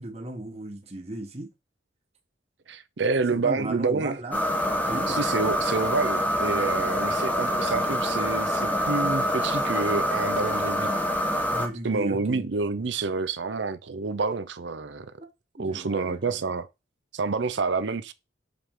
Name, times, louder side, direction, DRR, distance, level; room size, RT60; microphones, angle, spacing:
voice 1, 0.0-1.5 3.3-4.5 4.8-5.2 6.9-7.0 11.5-12.5 15.2-15.3 15.6-16.4, right 1 dB, 35° right, 1.2 m, -36 dB
voice 2, 2.7-4.2 5.1-10.9 11.8-15.1 15.6-16.7 17.1-18.1, right 4 dB, 70° right, 0.6 m, -28 dB
sound 1, 4.3-11.7, equal, 10° left, 0.8 m, -26 dB
6.1 x 5.1 x 3.7 m
head